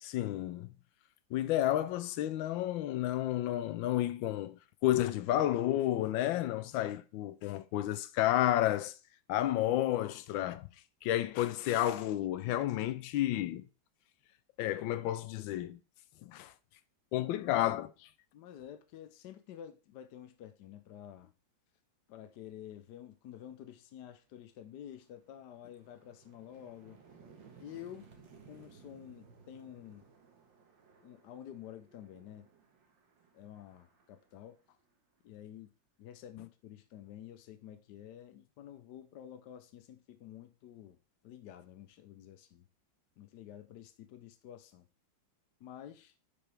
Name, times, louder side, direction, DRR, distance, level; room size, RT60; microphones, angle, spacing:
voice 1, 0.0-0.7 1.3-4.6 4.8-8.9 9.3-10.7 11.0-13.7 14.6-15.8 16.3-16.5 17.1-17.9, left 13 dB, 85° left, 1.3 m, -31 dB
voice 2, 17.2-17.6 18.3-21.3 22.1-27.0 27.6-28.1 28.4-30.0 31.0-32.5 33.3-34.6 35.2-35.7 36.0-41.0 41.2-42.7 43.2-44.9 45.6-46.1, left 10 dB, 70° left, 1.2 m, -50 dB
sound 1, 23.8-24.0 24.4-35.2, right 5 dB, 75° right, 2.1 m, -60 dB
10.0 x 5.1 x 3.3 m
omnidirectional pair, 2.1 m